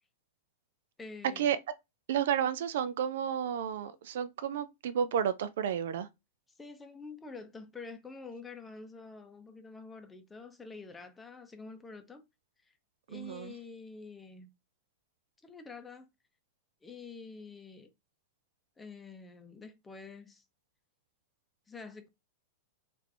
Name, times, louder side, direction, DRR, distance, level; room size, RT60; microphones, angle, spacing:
voice 1, 1.0-1.5 6.6-12.2 12.7-12.8 13.1-14.5 15.4-16.1 16.8-17.9 18.8-20.4 21.7-22.1, left 4 dB, 15° left, 0.6 m, -47 dB
voice 2, 2.1-6.1 13.1-13.5, right 8 dB, 70° right, 0.3 m, -31 dB
3.3 x 2.5 x 3.2 m
hypercardioid pair, 110°, 0 cm